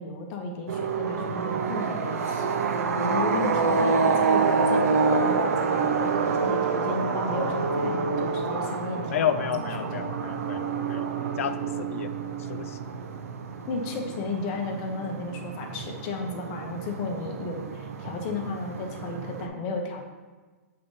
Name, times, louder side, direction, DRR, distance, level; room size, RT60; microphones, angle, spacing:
voice 1, 0.0-2.4 3.0-9.4 9.9-10.3 13.7-20.0, left 3 dB, 35° left, 2 dB, 1.2 m, -34 dB
sound 1, 0.7-19.5, right 4 dB, 75° right, 0.8 m, -27 dB
voice 2, 9.1-11.1 11.4-12.1 12.5-12.8, left 9 dB, 65° left, 11 dB, 0.5 m, -31 dB
7.7 x 3.8 x 4.0 m, 1.3 s
hypercardioid pair, 155°, 8 cm